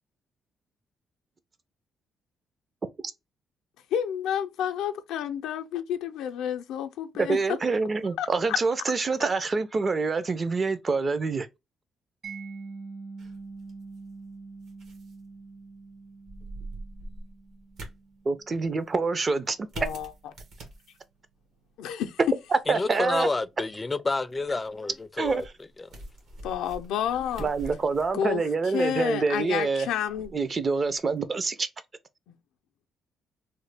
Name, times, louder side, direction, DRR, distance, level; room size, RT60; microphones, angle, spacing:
voice 1, 3.9-7.4 8.2-8.6 19.8-20.1 21.8-22.2 26.4-27.5 28.1-28.4 28.7-30.4 32.3-32.4, left 9 dB, 90° left, 0.4 m, -30 dB
voice 2, 7.2-11.5 18.3-19.7 22.5-23.3 25.2-25.4 27.4-29.9 30.3-31.7, right 4 dB, 35° right, 0.4 m, -26 dB
Mallet percussion, 12.2-19.0, right 4 dB, 55° right, 1.3 m, -44 dB
sound 1, 13.2-31.3, right 2 dB, 75° right, 1.2 m, -46 dB
voice 3, 22.7-25.4 25.8-25.9, left 3 dB, 25° left, 0.3 m, -29 dB
3.1 x 2.1 x 3.3 m
cardioid pair, 90°, 0 cm